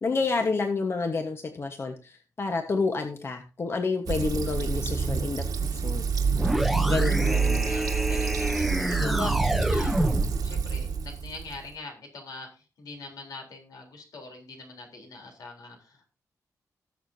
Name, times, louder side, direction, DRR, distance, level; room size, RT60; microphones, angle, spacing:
voice 1, 0.0-5.5 5.7-6.0 6.9-7.7 9.0-9.3, left 4 dB, 40° left, 5 dB, 1.3 m, -29 dB
Fill (with liquid), 4.1-11.7, right 5 dB, 80° right, 1.8 m, -27 dB
sound 1, 6.3-10.4, right 1 dB, ahead, 0.8 m, -27 dB
voice 2, 7.0-12.5 12.8-16.1, left 3 dB, 85° left, 1 dB, 3.7 m, -43 dB
19.5 x 6.7 x 2.8 m, 0.32 s
wide cardioid pair, 130°, 6 cm